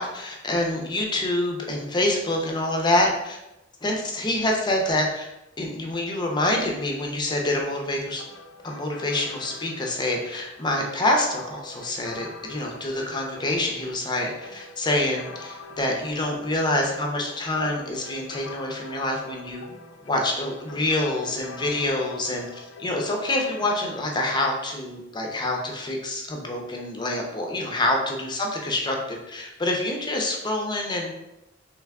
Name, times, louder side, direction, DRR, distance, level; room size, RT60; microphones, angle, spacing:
voice 1, 0.0-3.4 3.8-5.3 5.6-8.2 8.6-19.6 20.0-31.1, left 1 dB, 25° left, 1 dB, 0.6 m, -26 dB
sound 1, 8.2-24.4, left 3 dB, 75° left, 0.5 m, -44 dB
3.4 x 3.2 x 3.5 m, 0.91 s
head